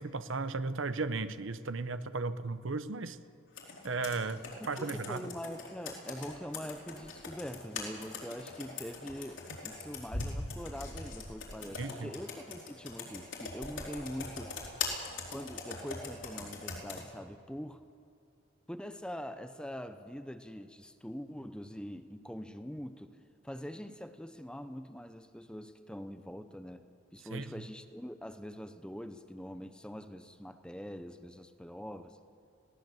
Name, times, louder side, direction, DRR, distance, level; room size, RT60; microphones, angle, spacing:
voice 1, 0.0-3.2 3.8-5.3 11.8-12.1 27.3-27.5, right 3 dB, 70° right, 13 dB, 0.8 m, -35 dB
Computer keyboard, 3.5-17.0, left 3 dB, 65° left, 4.2 m, -42 dB
voice 2, 4.6-14.5 15.3-17.8 18.7-23.2 23.4-26.8 27.1-32.2, equal, 5° left, 9 dB, 0.8 m, -43 dB
21.0 x 17.5 x 7.9 m, 2.4 s
head